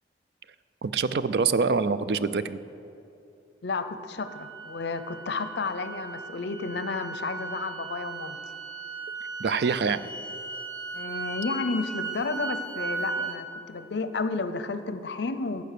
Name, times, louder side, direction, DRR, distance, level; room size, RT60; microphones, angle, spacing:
voice 1, 0.8-2.6 9.4-10.1, right 5 dB, 65° right, 14 dB, 0.4 m, -25 dB
voice 2, 3.6-8.4 10.9-15.6, left 3 dB, 75° left, 11 dB, 0.6 m, -32 dB
sound 1, 4.2-13.4, right 4 dB, 85° right, 2.1 m, -37 dB
15.0 x 5.3 x 6.7 m, 2.8 s
head